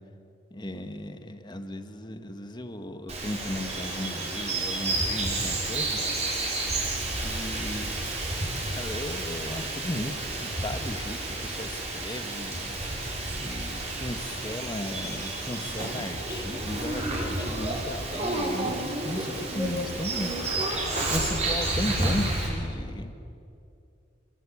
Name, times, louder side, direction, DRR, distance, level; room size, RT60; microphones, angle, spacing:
voice 1, 0.5-6.0 7.2-8.1 8.7-10.1 10.4-23.1, left 1 dB, 25° left, 8 dB, 1.6 m, -36 dB
Bird vocalization bird call bird song, 3.1-22.5, right 2 dB, 35° right, 7.0 m, -30 dB
28.5 x 23.5 x 8.7 m, 2.5 s
head